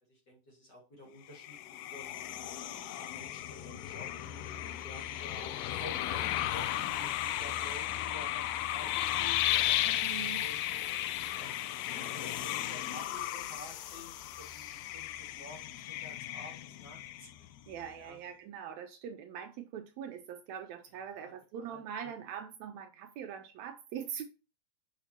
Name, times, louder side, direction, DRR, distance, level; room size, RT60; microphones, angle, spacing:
voice 1, 0.1-2.2 2.8-10.6 11.4-14.7 14.9-17.5 18.0-18.2 21.1-21.3 21.6-22.1, left 1 dB, 40° left, 2.1 m, -51 dB
sound 1, 1.3-17.6, left 13 dB, 85° left, 1.9 m, -35 dB
voice 2, 9.9-10.4 17.7-24.2, right 8 dB, 75° right, 1.7 m, -42 dB
6.2 x 5.7 x 2.8 m
omnidirectional pair, 3.4 m